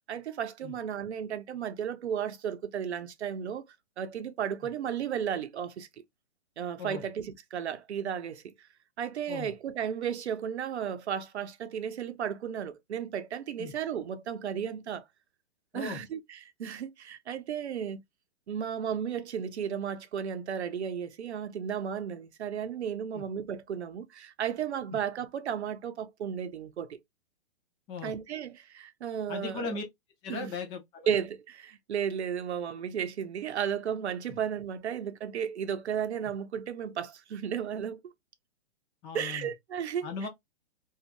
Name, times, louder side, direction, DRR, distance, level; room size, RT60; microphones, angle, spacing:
voice 1, 0.1-3.6 4.0-5.9 6.6-8.7 9.0-15.0 15.7-18.0 18.5-26.9 28.0-29.7 30.3-30.5 31.1-38.1 39.1-40.1, right 8 dB, 85° right, 0.7 m, -34 dB
voice 2, 15.7-16.0 23.1-23.2 24.9-25.0 27.9-28.2 29.3-29.8 30.2-31.1 39.0-39.5 40.0-40.3, left 4 dB, 15° left, 0.4 m, -38 dB
2.7 x 2.4 x 2.4 m
hypercardioid pair, 145°, 32 cm